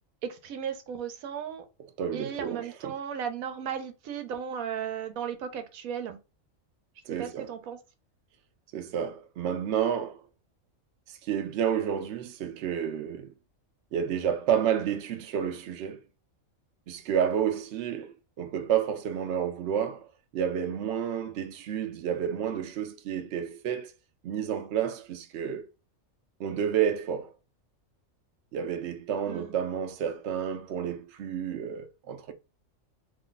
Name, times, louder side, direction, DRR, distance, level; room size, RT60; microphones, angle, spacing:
voice 1, 0.2-1.6 2.1-6.2 7.1-7.8 29.3-29.5, right 8 dB, 90° right, 1.1 m, -35 dB
voice 2, 2.0-2.9 7.1-7.5 8.7-10.2 11.1-13.3 13.9-16.0 16.9-20.1 20.3-23.9 24.2-25.7 26.4-27.3 28.5-32.3, right 8 dB, 65° right, 0.8 m, -30 dB
2.8 x 2.2 x 3.8 m
omnidirectional pair, 1.4 m